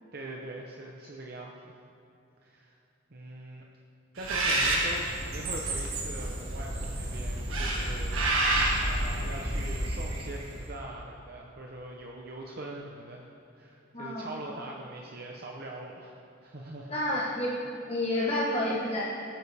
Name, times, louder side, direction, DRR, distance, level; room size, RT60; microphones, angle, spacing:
voice 1, 0.1-1.7 2.4-2.8 3.1-3.6 4.1-13.3 13.6-16.1 16.4-16.9, right 1 dB, 50° right, -1 dB, 0.8 m, -42 dB
Bird, 4.2-10.6, right 1 dB, 90° right, 1.8 m, -29 dB
voice 2, 13.9-14.3 16.9-17.5 17.9-19.0, left 1 dB, 30° left, -6 dB, 1.2 m, -29 dB
17.0 x 9.1 x 3.5 m, 2.8 s
head